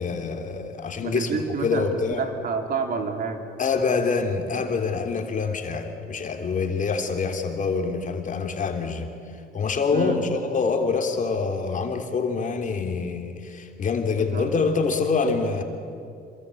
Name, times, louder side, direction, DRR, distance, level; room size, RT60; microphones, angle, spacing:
voice 1, 0.0-2.2 3.6-9.1 9.5-15.6, left 4 dB, 45° left, 4 dB, 3.3 m, -26 dB
voice 2, 1.0-1.9 2.2-3.4 5.2-5.3 9.9-10.2 14.2-14.6, right 5 dB, 55° right, 5 dB, 3.1 m, -29 dB
27.0 x 23.5 x 8.6 m, 2.5 s
cardioid pair, 90°, 18 cm